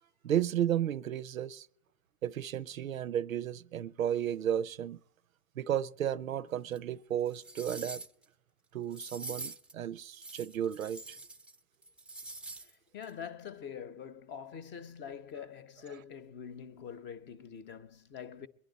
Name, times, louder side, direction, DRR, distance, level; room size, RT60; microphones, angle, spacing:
voice 1, 0.2-1.7 2.2-5.0 5.6-8.0 8.7-11.2 15.9-16.0, right 10 dB, 90° right, 0.5 m, -33 dB
sound 1, 6.7-6.8 7.3-8.2 8.9-9.7 10.1-11.6 11.8-12.7 13.0-13.1, right 2 dB, 5° right, 0.5 m, -45 dB
voice 2, 12.6-18.5, left 7 dB, 30° left, 0.8 m, -45 dB
23.5 x 10.0 x 4.0 m
hypercardioid pair, 100°, 40 cm